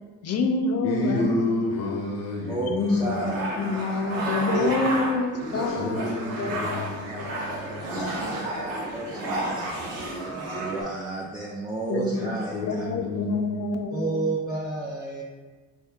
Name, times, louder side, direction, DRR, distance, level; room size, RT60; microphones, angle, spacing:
voice 1, 0.2-1.3 2.7-6.9 7.1-7.3 7.8-7.9 8.3-8.4 11.9-12.4 12.7-14.3, left 3 dB, 40° left, 5 dB, 0.5 m, -27 dB
voice 2, 0.8-3.3 5.7-7.8 12.5-13.6, left 1 dB, 85° left, -2 dB, 0.7 m, -30 dB
voice 3, 2.5-3.5 4.5-4.7 5.0-5.1 7.9-10.0 10.3-12.9 13.9-15.2, right 2 dB, 10° right, -5 dB, 0.7 m, -32 dB
sound 1, 2.8-10.8, right 1 dB, 85° right, 0.8 m, -32 dB
4.2 x 2.4 x 3.4 m, 1.3 s
hypercardioid pair, 55°, 39 cm